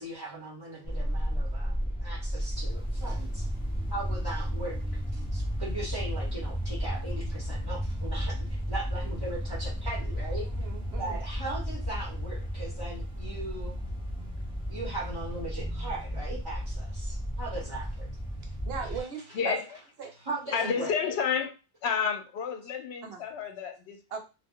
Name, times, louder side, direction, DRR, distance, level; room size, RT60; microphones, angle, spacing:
voice 1, 0.0-3.5 3.9-4.8 5.1-10.5 11.0-13.8 14.7-18.1 20.3-20.9, right 2 dB, 30° right, 0.9 m, -39 dB
sound 1, 0.8-19.0, equal, 5° right, 0.6 m, -33 dB
voice 2, 10.5-11.2 18.4-19.6 20.0-20.1 20.5-20.7 23.0-23.2 24.1-24.2, right 6 dB, 70° right, 0.9 m, -38 dB
voice 3, 19.3-19.6 20.5-21.6 21.8-24.2, left 6 dB, 75° left, 0.8 m, -30 dB
2.4 x 2.1 x 3.5 m
omnidirectional pair, 1.1 m